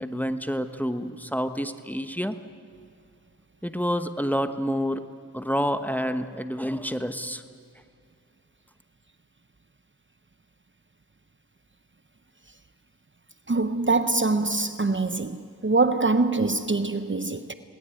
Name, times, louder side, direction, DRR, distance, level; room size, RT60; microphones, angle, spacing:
voice 1, 0.0-2.4 3.6-5.0 5.3-7.4, equal, 5° left, 1.1 m, -28 dB
voice 2, 13.5-17.5, right 3 dB, 35° right, 0.9 m, -24 dB
19.5 x 19.0 x 9.1 m
cardioid pair, 45°, 36 cm